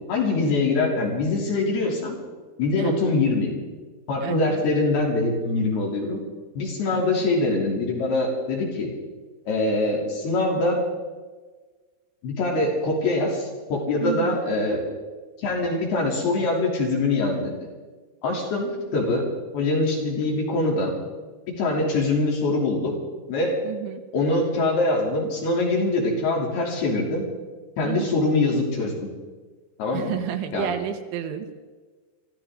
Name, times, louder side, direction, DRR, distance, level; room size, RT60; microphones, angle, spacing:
voice 1, 0.1-2.2 2.6-3.5 4.1-6.2 6.5-8.9 9.5-10.8 12.2-14.8 15.4-17.5 18.2-19.3 19.5-20.9 21.6-23.0 23.3-23.6 24.1-27.2 27.8-29.1 29.8-30.1 30.5-30.7, left 2 dB, 60° left, -2 dB, 4.9 m, -23 dB
voice 2, 4.2-4.7 6.9-7.1 14.0-14.4 21.8-21.9 23.6-24.0 27.8-28.2 29.9-31.6, right 10 dB, 85° right, 7 dB, 3.5 m, -31 dB
24.5 x 15.0 x 3.8 m, 1.4 s
omnidirectional pair, 5.4 m